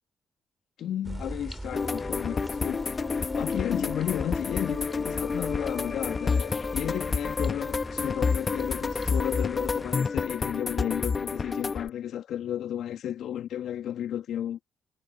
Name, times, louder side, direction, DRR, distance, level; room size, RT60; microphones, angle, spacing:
voice 1, 0.8-3.1 3.3-14.6, left 10 dB, 70° left, 2.4 m, -33 dB
sound 1, 1.0-10.0, right 1 dB, 10° right, 4.0 m, -41 dB
sound 2, 1.7-11.9, left 4 dB, 40° left, 1.7 m, -29 dB
hypercardioid pair, 45°, 0 cm